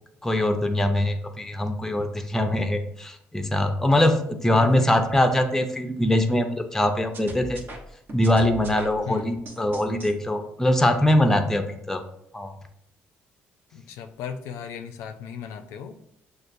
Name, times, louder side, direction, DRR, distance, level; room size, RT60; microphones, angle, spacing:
voice 1, 0.2-7.6 8.1-12.0 12.3-12.5, left 1 dB, 10° left, 7 dB, 0.5 m, -22 dB
voice 2, 4.5-5.0 9.1-9.3 13.7-15.9, left 7 dB, 85° left, 6 dB, 0.4 m, -35 dB
sound 1, 7.1-10.1, right 1 dB, 50° right, 0.9 m, -40 dB
6.2 x 2.3 x 2.6 m, 0.74 s
supercardioid pair, 85°, 5 cm